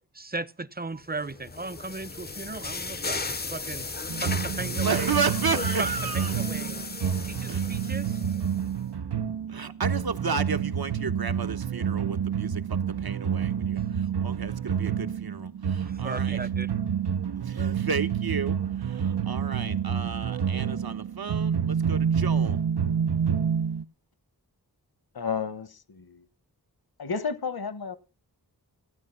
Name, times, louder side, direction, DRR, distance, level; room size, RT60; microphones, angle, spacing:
voice 1, 0.1-3.9 4.2-5.2 5.8-6.8 7.2-8.2 15.7-16.7, right 2 dB, 25° right, 0.7 m, -36 dB
sound 1, 1.2-8.7, left 3 dB, 25° left, 0.6 m, -35 dB
sound 2, 4.1-23.8, right 7 dB, 85° right, 0.9 m, -28 dB
voice 2, 4.8-6.3 7.5-7.6 9.5-16.4 17.4-22.6, right 5 dB, 65° right, 1.2 m, -32 dB
voice 3, 25.1-26.2 27.0-28.0, left 5 dB, 65° left, 1.2 m, -32 dB
16.0 x 9.6 x 5.8 m
wide cardioid pair, 50°, 40 cm